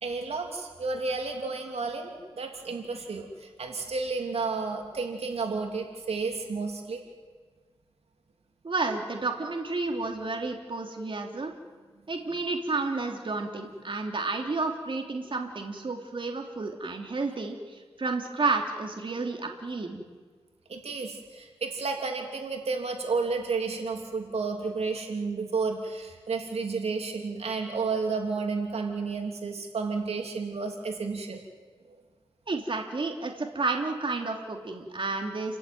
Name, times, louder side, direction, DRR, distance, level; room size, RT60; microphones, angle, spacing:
voice 1, 0.0-7.0 20.7-31.4 31.9-32.0, right 4 dB, 80° right, 3 dB, 3.1 m, -31 dB
voice 2, 8.6-11.5 12.1-20.0 32.5-35.6, right 3 dB, 55° right, 3 dB, 3.1 m, -31 dB
30.0 x 15.0 x 9.4 m, 1.4 s
cardioid pair, 55°, 10 cm